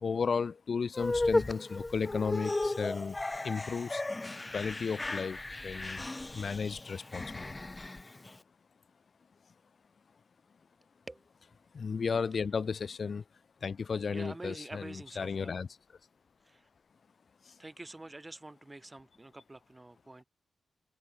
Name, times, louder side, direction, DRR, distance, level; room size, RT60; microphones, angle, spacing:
voice 1, 0.0-3.2 3.4-4.0 4.5-6.1 6.3-7.5 11.7-13.2 13.6-15.7 17.4-17.5, left 5 dB, 50° left, 0.9 m, -34 dB
sound 1, 0.9-8.4, left 2 dB, 20° left, 0.6 m, -35 dB
voice 2, 14.1-15.6 16.4-16.7 17.6-20.2, right 2 dB, 15° right, 6.6 m, -47 dB
wide cardioid pair, 110°, 0 cm